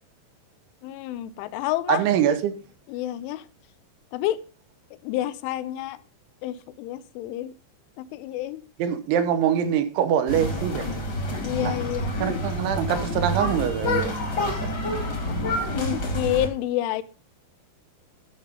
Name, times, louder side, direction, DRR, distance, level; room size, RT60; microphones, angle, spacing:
voice 1, 0.8-2.0 2.9-3.5 4.1-4.4 5.0-6.0 6.4-7.6 8.0-8.7 11.4-12.1 15.7-17.0, left 13 dB, 85° left, 14 dB, 3.2 m, -29 dB
voice 2, 1.9-2.6 8.8-11.0 11.6-11.8 12.2-14.1 15.2-15.4, right 9 dB, 80° right, 9 dB, 3.3 m, -24 dB
sound 1, 10.3-16.5, left 1 dB, 35° left, 1.8 m, -28 dB
12.0 x 5.7 x 5.2 m, 0.37 s
omnidirectional pair, 5.5 m